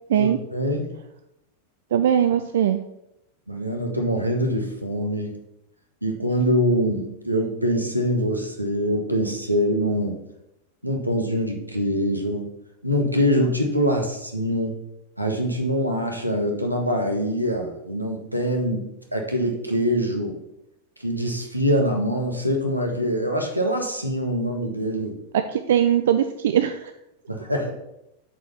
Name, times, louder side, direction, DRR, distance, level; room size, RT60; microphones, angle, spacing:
voice 1, 0.2-1.0 3.5-5.4 6.0-10.2 10.8-12.5 12.8-14.8 15.2-18.8 19.1-20.4 21.0-25.2 27.3-27.7, equal, 90° right, 2 dB, 1.5 m, -24 dB
voice 2, 1.9-2.8 25.3-26.9, right 9 dB, 60° right, 9 dB, 0.5 m, -20 dB
8.2 x 5.2 x 5.7 m, 0.85 s
figure-of-eight pair, 90°, 0 cm